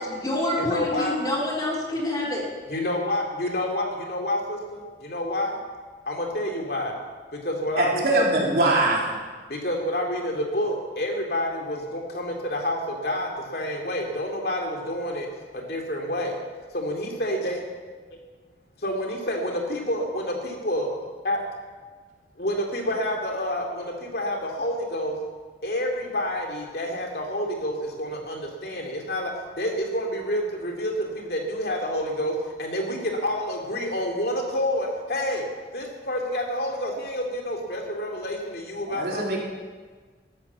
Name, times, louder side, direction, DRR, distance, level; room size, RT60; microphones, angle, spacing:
voice 1, 0.0-2.5, left 1 dB, 20° left, -3 dB, 3.6 m, -27 dB
voice 2, 0.6-1.2 2.7-5.6 6.1-6.9 7.3-8.2 9.5-15.3 15.5-16.4 16.7-17.6 18.8-21.4 22.4-25.2 25.6-35.5 35.7-39.4, left 1 dB, 60° left, 1 dB, 2.6 m, -28 dB
voice 3, 7.8-9.1 38.8-39.4, right 2 dB, 55° right, -3 dB, 3.6 m, -22 dB
13.0 x 11.5 x 7.4 m, 1.5 s
head